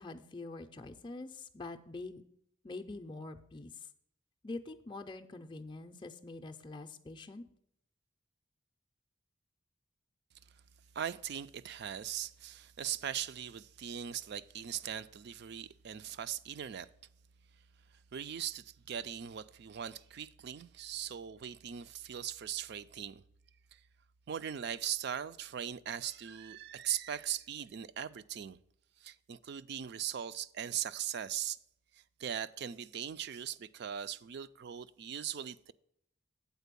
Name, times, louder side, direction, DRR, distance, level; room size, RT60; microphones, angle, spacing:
voice 1, 0.0-2.2 2.6-3.9 4.4-7.4, left 2 dB, 20° left, 0.5 m, -45 dB
voice 2, 10.9-16.9 18.1-23.2 23.7-23.8 24.3-28.6 29.0-31.6 31.9-35.7, right 9 dB, 50° right, 0.3 m, -40 dB
8.1 x 4.4 x 6.8 m
head